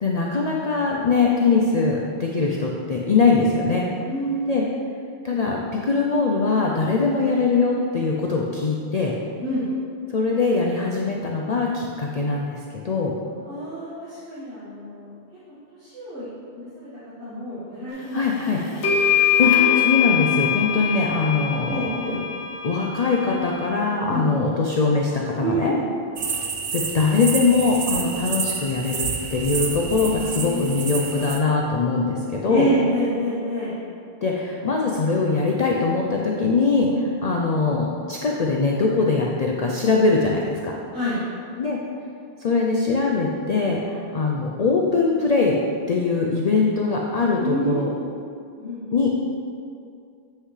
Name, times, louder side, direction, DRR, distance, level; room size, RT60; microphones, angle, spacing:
voice 1, 0.0-3.9 4.5-4.6 5.2-9.1 10.1-12.6 12.8-13.1 18.1-18.6 19.4-22.2 22.6-25.7 26.7-32.7 34.2-36.9 37.2-40.7 41.6-41.8 42.4-45.6 45.9-47.9 48.9-49.1, left 4 dB, 50° left, -1 dB, 0.5 m, -22 dB
voice 2, 4.0-4.8 9.4-9.6 13.5-15.1 15.8-16.3 16.5-16.9 17.2-18.7 21.7-22.2 24.1-24.3 25.4-25.9 28.0-28.1 29.9-31.3 32.5-33.8 36.9-37.0 40.9-41.2 47.4-48.0 48.5-48.8, equal, 70° right, -13 dB, 2.0 m, -28 dB
sound 1, 18.2-18.3 18.8-23.7, left 9 dB, 75° left, 1.4 m, -23 dB
sound 2, 26.2-31.4, right 5 dB, 50° right, 0.7 m, -29 dB
7.7 x 6.3 x 3.2 m, 2.4 s
omnidirectional pair, 1.2 m